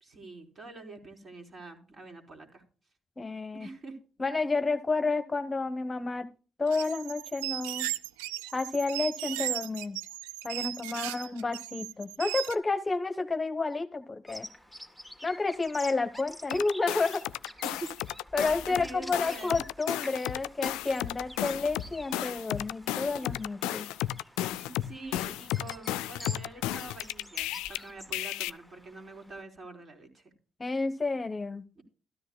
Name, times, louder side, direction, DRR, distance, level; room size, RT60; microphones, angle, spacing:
voice 1, 0.0-2.6 3.5-4.0 11.2-11.3 17.6-17.9 18.3-19.6 23.2-23.3 24.6-30.3 31.8-31.9, right 2 dB, 45° right, 3 dB, 3.9 m, -45 dB
voice 2, 3.2-3.7 4.2-6.3 6.6-7.9 8.5-10.0 10.4-14.5 15.2-17.3 18.3-23.9 30.6-31.6, left 3 dB, 30° left, 8 dB, 1.1 m, -30 dB
sound 1, 6.7-12.5, right 16 dB, 90° right, 0.4 m, -36 dB
Bird vocalization bird call bird song, 14.3-29.4, equal, 5° right, 2.3 m, -48 dB
sound 2, 16.5-18.8 19.1-27.8 28.1-28.5, left 14 dB, 80° left, 0.4 m, -33 dB
13.5 x 13.0 x 2.3 m, 0.36 s
hypercardioid pair, 50°, 0 cm